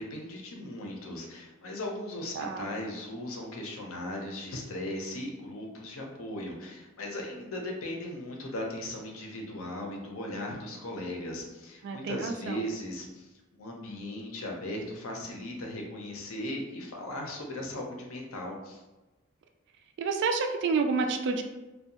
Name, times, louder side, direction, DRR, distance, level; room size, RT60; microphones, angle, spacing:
voice 1, 0.0-18.8, left 1 dB, 75° left, 0 dB, 0.6 m, -38 dB
voice 2, 2.4-2.7 11.8-12.7 20.0-21.4, right 4 dB, 55° right, 5 dB, 0.3 m, -29 dB
2.6 x 2.2 x 2.8 m, 1.1 s
head